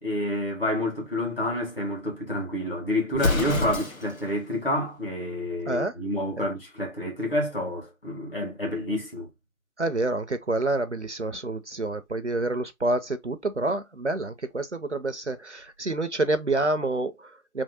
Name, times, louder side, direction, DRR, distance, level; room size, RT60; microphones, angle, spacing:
voice 1, 0.0-9.3, left 1 dB, 40° left, 1.9 m, -29 dB
Explosion, 3.1-4.3, left 3 dB, 75° left, 1.3 m, -27 dB
voice 2, 9.8-17.6, right 2 dB, 55° right, 0.5 m, -28 dB
3.5 x 3.0 x 4.0 m
figure-of-eight pair, 175°, 42 cm